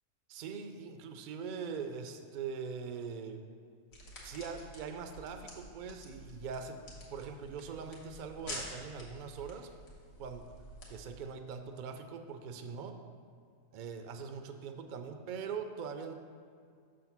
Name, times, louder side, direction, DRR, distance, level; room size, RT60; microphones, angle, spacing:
voice 1, 0.3-3.4 4.2-9.7 10.2-10.5 10.9-13.0 13.7-16.1, right 6 dB, 75° right, 6 dB, 0.4 m, -42 dB
sound 1, 3.9-11.2, left 1 dB, 90° left, 1.7 m, -49 dB
6.3 x 3.7 x 5.9 m, 2.2 s
omnidirectional pair, 1.4 m